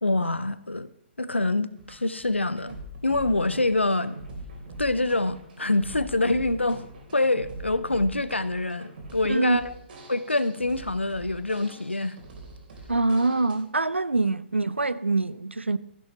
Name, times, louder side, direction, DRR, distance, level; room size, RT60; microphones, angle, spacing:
voice 1, 0.0-0.9 1.2-2.8 3.0-4.2 4.8-6.8 7.1-9.7 10.1-12.2 14.3-14.4, left 2 dB, 90° left, 0.7 m, -25 dB
sound 1, 1.8-13.6, right 1 dB, 55° right, 3.3 m, -43 dB
voice 2, 12.9-15.8, right 2 dB, 90° right, 0.6 m, -24 dB
14.5 x 11.5 x 3.0 m
figure-of-eight pair, 125°, 6 cm